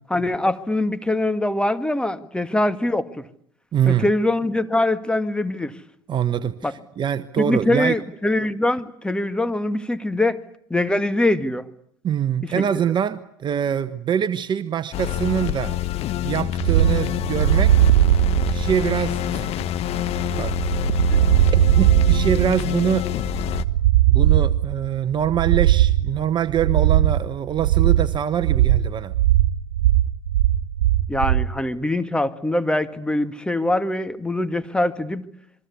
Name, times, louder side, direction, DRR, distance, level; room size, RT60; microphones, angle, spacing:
voice 1, 0.1-3.2 3.9-5.7 6.6-6.7 7.4-10.4 10.7-11.7 12.5-12.6 21.1-21.2 31.1-35.3, left 1 dB, 5° left, 1.9 m, -23 dB
voice 2, 3.7-4.1 6.1-7.9 12.0-15.8 16.2-18.1 18.5-19.5 20.4-20.6 21.5-23.1 24.1-29.1, right 9 dB, 35° right, 1.2 m, -24 dB
sound 1, 14.9-23.7, left 13 dB, 50° left, 1.3 m, -26 dB
sound 2, 16.6-31.5, right 13 dB, 75° right, 1.6 m, -19 dB
27.5 x 23.0 x 8.4 m
hypercardioid pair, 75°, 13 cm